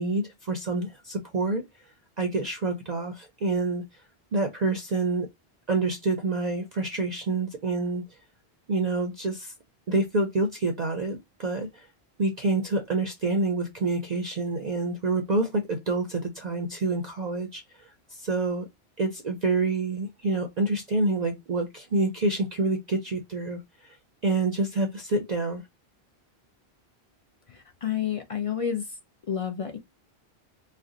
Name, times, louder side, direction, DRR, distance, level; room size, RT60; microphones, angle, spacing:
voice 1, 0.0-1.6 2.2-3.8 4.3-5.3 5.7-8.0 8.7-9.5 9.9-11.9 12.2-18.7 19.0-24.0 24.2-25.6, right 2 dB, 50° right, 0.5 m, -27 dB
voice 2, 27.5-29.0 29.3-29.8, left 8 dB, 55° left, 0.3 m, -30 dB
2.5 x 2.1 x 3.7 m
omnidirectional pair, 1.1 m